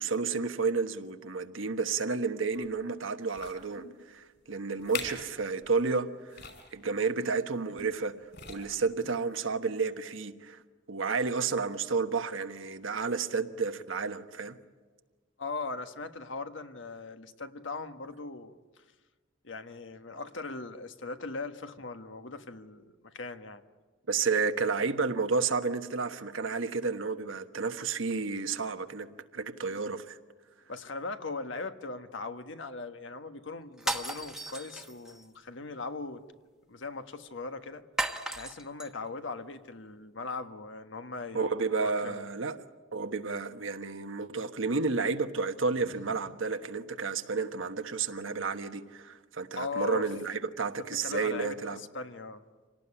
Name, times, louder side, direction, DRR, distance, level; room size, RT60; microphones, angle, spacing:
voice 1, 0.0-6.4 6.7-8.2 8.5-10.6 10.9-14.6 24.1-30.2 41.3-42.6 42.9-51.8, right 4 dB, 80° right, 1.3 m, -31 dB
sound 1, 2.5-2.7 3.3-3.7 4.4-4.5 4.8-5.3 5.6-5.8 6.3-6.7 7.8-8.0 8.3-8.9 9.6-9.7, left 6 dB, 55° left, 5.7 m, -42 dB
voice 2, 15.4-18.8 19.4-23.6 30.7-36.2 36.7-37.8 38.4-41.5 41.8-42.2 45.8-46.1 49.5-50.1 51.0-52.4, left 3 dB, 75° left, 1.4 m, -39 dB
sound 2, 33.8-35.3 38.0-38.9, right 1 dB, 5° right, 1.1 m, -35 dB
27.0 x 18.0 x 10.0 m
head